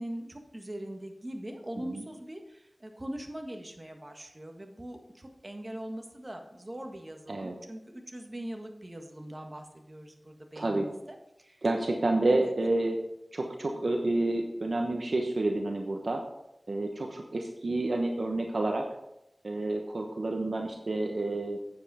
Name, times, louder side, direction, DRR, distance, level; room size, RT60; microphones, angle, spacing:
voice 1, 0.0-10.9 11.4-11.6 12.3-12.5, right 1 dB, 35° right, 4 dB, 1.6 m, -41 dB
voice 2, 10.6-10.9 11.6-13.0 13.3-16.2 16.7-18.9 19.4-21.6, right 2 dB, 75° right, 2 dB, 1.0 m, -29 dB
8.9 x 7.8 x 4.3 m, 0.84 s
wide cardioid pair, 40°, 0 cm